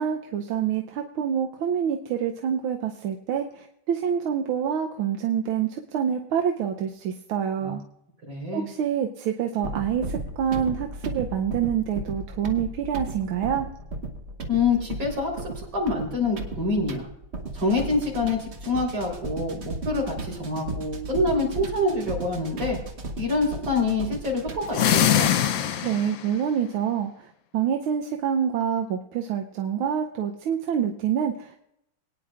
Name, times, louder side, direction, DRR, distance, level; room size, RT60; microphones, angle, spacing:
voice 1, 0.0-7.8 8.5-13.7 25.8-27.1 27.5-31.7, right 8 dB, 90° right, 3 dB, 1.6 m, -27 dB
voice 2, 8.3-8.7 14.5-17.1 17.5-22.8 23.2-24.8 25.1-25.3, left 3 dB, 70° right, -2 dB, 4.6 m, -26 dB
sound 1, 9.6-24.9, right 2 dB, 40° right, 1.1 m, -35 dB
sound 2, 24.7-26.3, left 10 dB, 70° left, 0.8 m, -22 dB
22.0 x 9.7 x 2.4 m, 0.78 s
omnidirectional pair, 2.2 m